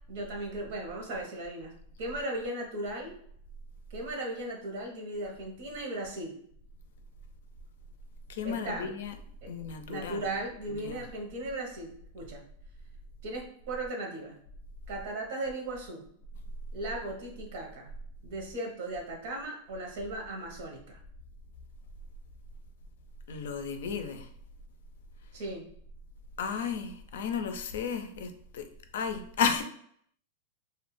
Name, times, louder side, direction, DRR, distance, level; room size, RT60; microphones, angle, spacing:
voice 1, 0.1-3.1 3.9-6.4 8.4-8.9 9.4-9.5 9.9-12.4 13.2-14.4 14.9-16.0 16.7-17.9 18.2-21.0 25.3-25.7, right 1 dB, 65° right, 2 dB, 0.8 m, -37 dB
voice 2, 8.3-9.1 9.5-10.2 10.8-11.0 23.3-24.3 26.4-28.7 28.9-29.6, left 6 dB, 75° left, 7 dB, 0.4 m, -33 dB
2.2 x 2.1 x 3.1 m, 0.65 s
supercardioid pair, 130°, 0 cm